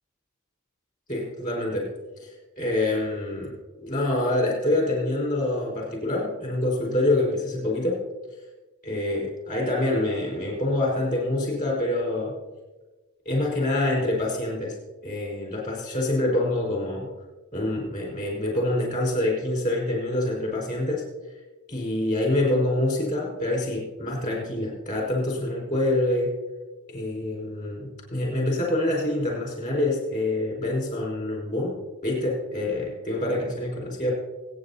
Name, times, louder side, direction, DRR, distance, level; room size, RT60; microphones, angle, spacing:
voice 1, 1.1-1.9 2.2-3.5 3.8-8.0 8.8-12.3 13.2-14.7 15.0-17.1 17.5-21.0 21.7-26.3 26.9-31.8 32.0-34.1, left 1 dB, 40° left, -3 dB, 4.9 m, -26 dB
24.5 x 9.5 x 2.8 m, 1.2 s
head